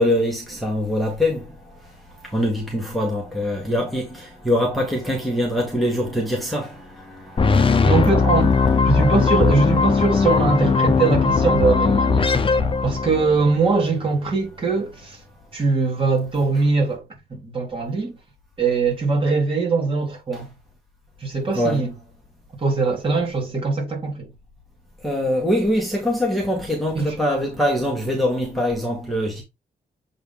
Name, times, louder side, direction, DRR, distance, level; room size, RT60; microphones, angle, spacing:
voice 1, 0.0-1.4 2.3-6.8 7.1-9.3 9.9-10.3 10.8-10.9 21.5-21.9 25.0-29.4, left 1 dB, ahead, 1.9 m, -24 dB
sound 1, 7.4-13.5, left 4 dB, 30° left, 0.8 m, -19 dB
voice 2, 7.8-8.6 8.8-12.3 12.8-15.2 15.5-18.1 18.6-20.5 21.2-21.9 22.6-24.3 26.9-27.1, right 4 dB, 30° right, 3.5 m, -22 dB
7.7 x 4.0 x 3.7 m
wide cardioid pair, 155°, 17 cm